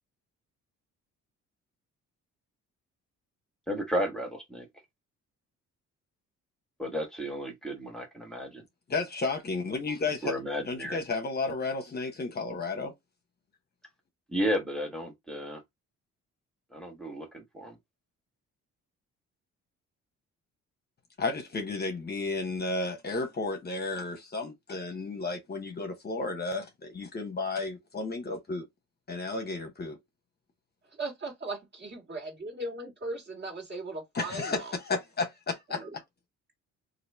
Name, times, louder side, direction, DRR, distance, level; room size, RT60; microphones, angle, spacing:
voice 1, 3.7-4.7 6.8-8.6 10.2-11.0 14.3-15.6 16.7-17.7, equal, ahead, 1.1 m, -33 dB
voice 2, 8.9-10.4 10.6-12.9 21.2-28.7 29.1-30.0 34.1-36.0, left 3 dB, 35° left, 0.8 m, -33 dB
voice 3, 31.0-34.7 35.7-35.9, right 2 dB, 35° right, 1.7 m, -38 dB
2.9 x 2.5 x 3.2 m
cardioid pair, 90°, 30 cm